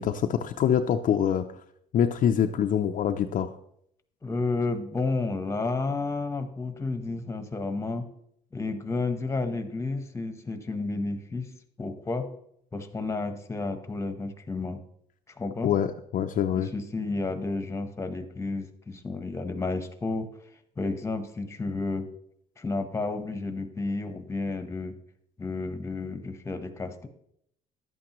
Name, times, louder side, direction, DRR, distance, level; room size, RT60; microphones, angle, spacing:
voice 1, 0.0-1.4 1.9-3.5 15.6-16.7, left 9 dB, 50° left, 5 dB, 0.5 m, -25 dB
voice 2, 4.2-8.1 8.5-11.5 11.8-12.3 12.7-14.8 15.3-15.7 16.5-20.3 20.8-22.1 22.6-24.9 25.4-27.1, left 3 dB, 15° left, 9 dB, 1.0 m, -31 dB
11.0 x 8.6 x 3.0 m, 0.72 s
cardioid pair, 110°, 17 cm